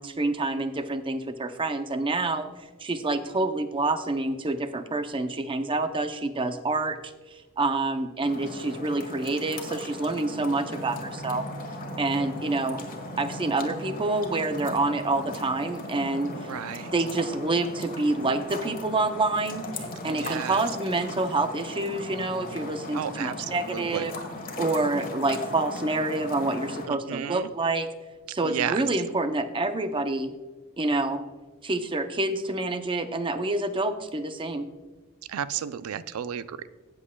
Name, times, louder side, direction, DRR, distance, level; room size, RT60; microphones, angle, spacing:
voice 1, 0.0-2.5 2.8-7.1 7.6-11.5 12.0-12.8 13.2-16.3 16.9-24.1 24.6-27.9 28.3-30.3 30.8-31.2 31.6-34.7, right 2 dB, 25° right, 9 dB, 0.5 m, -27 dB
sound 1, 8.2-26.9, left 1 dB, 40° left, 1.4 m, -38 dB
sound 2, 9.9-22.1, right 1 dB, 70° right, 2.4 m, -52 dB
voice 2, 16.5-16.9 20.1-20.6 22.9-24.1 26.9-27.5 28.4-28.8 35.3-36.6, right 8 dB, 85° right, 15 dB, 0.4 m, -32 dB
16.5 x 7.4 x 2.2 m, 1.3 s
head